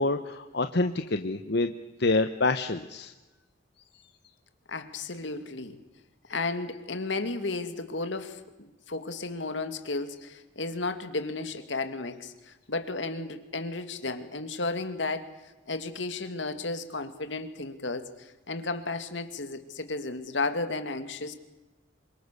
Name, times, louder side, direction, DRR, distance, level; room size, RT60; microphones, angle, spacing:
voice 1, 0.0-1.7 2.0-3.1, left 2 dB, 65° left, 8 dB, 1.0 m, -27 dB
voice 2, 4.7-5.8 6.3-15.3 15.7-21.4, left 3 dB, 80° left, 9 dB, 2.3 m, -33 dB
27.5 x 25.0 x 6.8 m, 1.1 s
head